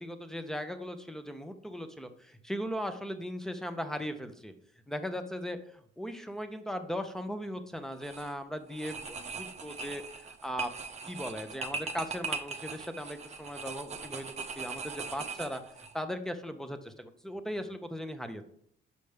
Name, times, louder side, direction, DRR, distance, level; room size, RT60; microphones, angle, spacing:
voice 1, 0.0-4.5 4.9-10.7 11.1-14.3 14.6-15.6 15.9-18.4, equal, ahead, 8 dB, 0.8 m, -38 dB
sound 1, 7.9-8.3 8.7-15.9, right 4 dB, 35° right, 0.7 m, -40 dB
6.9 x 5.0 x 3.3 m, 0.66 s
cardioid pair, 90°, 20 cm